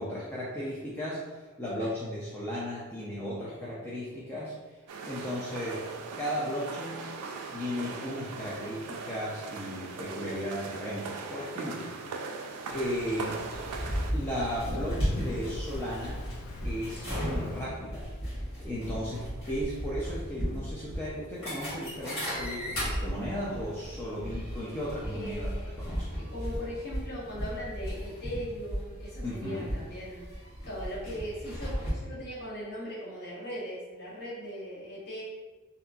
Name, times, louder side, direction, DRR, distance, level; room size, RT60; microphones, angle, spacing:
voice 1, 0.0-4.8 5.0-5.8 6.1-7.0 7.5-11.9 12.2-12.3 12.6-13.4 14.1-16.2 16.6-18.1 18.6-25.5 25.8-26.1 29.2-29.7, equal, 10° left, -8 dB, 0.3 m, -35 dB
sound 1, 4.9-14.1, right 4 dB, 80° right, 0.3 m, -40 dB
Insect, 12.7-17.7, left 3 dB, 85° left, 0.4 m, -47 dB
sound 2, 13.5-31.9, equal, 65° left, 1.3 m, -35 dB
voice 2, 25.1-25.7 26.2-35.2, equal, 45° left, -7 dB, 0.9 m, -39 dB
2.8 x 2.4 x 2.2 m, 1.3 s
head